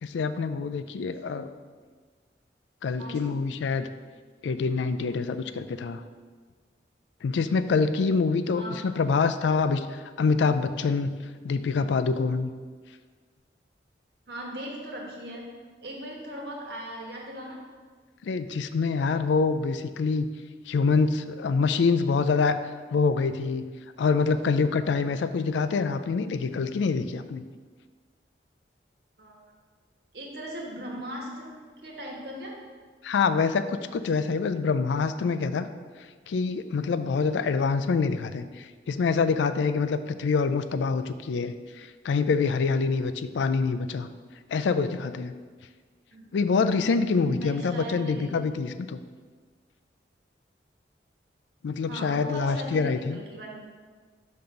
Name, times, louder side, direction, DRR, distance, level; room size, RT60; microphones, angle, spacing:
voice 1, 0.0-1.5 2.8-3.9 4.4-6.0 7.2-11.1 11.4-12.5 18.2-20.3 20.7-22.6 22.9-23.7 24.0-27.4 33.0-35.7 36.3-44.1 44.5-45.3 46.3-49.0 51.6-53.2, left 4 dB, 85° left, 11 dB, 0.3 m, -26 dB
voice 2, 3.0-3.3 8.6-8.8 14.3-15.5 15.8-17.6 29.2-29.4 30.1-31.5 31.8-32.6 46.1-46.2 47.2-48.3 51.8-53.6, equal, 70° right, -2 dB, 1.3 m, -38 dB
5.3 x 3.8 x 5.7 m, 1.5 s
head